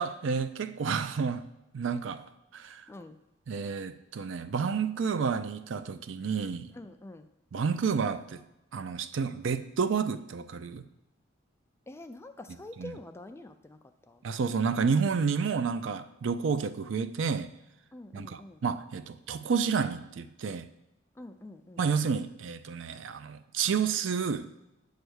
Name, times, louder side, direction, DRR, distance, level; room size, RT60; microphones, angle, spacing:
voice 1, 0.0-1.5 1.7-2.3 2.5-2.9 3.5-6.7 7.5-8.4 8.7-10.8 12.8-12.9 14.2-17.5 18.1-20.7 21.8-24.5, right 6 dB, 65° right, 0.4 m, -30 dB
voice 2, 6.7-7.3 11.9-13.8 14.1-14.2 17.9-18.6 21.2-21.8, left 2 dB, 15° left, 0.3 m, -46 dB
8.0 x 3.3 x 6.2 m
head